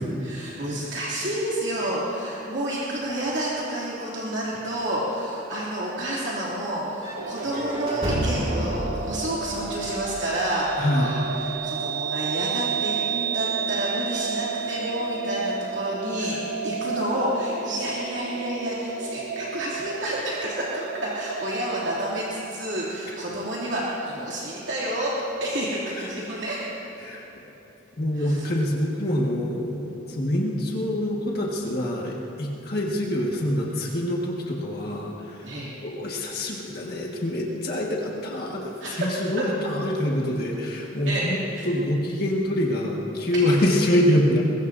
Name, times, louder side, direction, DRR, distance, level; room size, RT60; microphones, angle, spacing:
voice 1, 0.2-25.1 25.4-26.6 28.2-28.4 35.4-35.7 38.8-39.1 41.0-41.2 41.5-41.7 43.3-43.4, right 1 dB, 60° right, -7 dB, 2.8 m, -29 dB
sound 1, 7.0-10.9, right 1 dB, 30° right, 2.2 m, -31 dB
sound 2, 7.1-22.2, right 5 dB, 90° right, 1.2 m, -32 dB
voice 2, 10.8-11.1 16.2-16.4 19.8-19.9 25.9-26.1 27.0-27.5 28.0-35.5 35.8-44.4, left 1 dB, 50° left, -3 dB, 1.7 m, -26 dB
22.0 x 22.0 x 2.7 m, 2.9 s
head